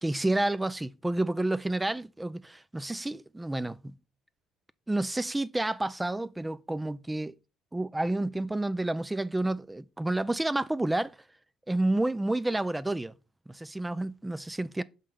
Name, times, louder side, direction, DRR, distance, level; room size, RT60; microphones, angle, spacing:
voice 1, 0.0-3.9 4.9-7.3 7.7-11.2 11.7-13.1 13.5-14.8, right 2 dB, 10° right, 0.3 m, -30 dB
6.6 x 5.5 x 3.6 m
supercardioid pair, 85°, 0 cm